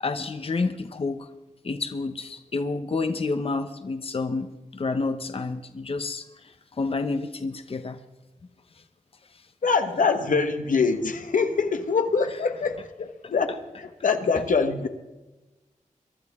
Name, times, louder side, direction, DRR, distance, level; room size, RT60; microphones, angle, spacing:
voice 1, 0.0-1.3 1.6-6.2 6.8-8.0, left 3 dB, 45° left, 8 dB, 0.8 m, -29 dB
voice 2, 9.6-14.9, left 4 dB, 90° left, 6 dB, 1.2 m, -24 dB
23.5 x 12.0 x 3.6 m, 1.1 s
wide cardioid pair, 110°, 13 cm